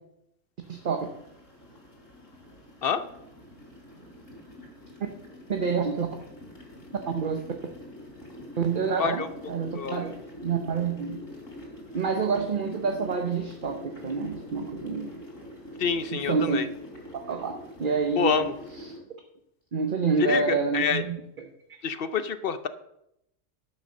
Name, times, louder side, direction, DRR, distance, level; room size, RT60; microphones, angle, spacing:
sound 1, 0.6-19.0, left 1 dB, 85° left, 4.1 m, -45 dB
voice 1, 0.7-1.1 5.5-6.1 7.1-7.4 8.6-11.2 11.9-15.2 16.1-16.6 17.1-18.5 18.7-18.9 19.7-21.5, right 5 dB, 45° right, 4 dB, 0.9 m, -28 dB
voice 2, 15.8-16.7 18.2-18.5 20.2-21.0 21.8-22.7, left 6 dB, 55° left, 11 dB, 0.8 m, -27 dB
11.5 x 6.3 x 6.5 m, 0.81 s
omnidirectional pair, 1.3 m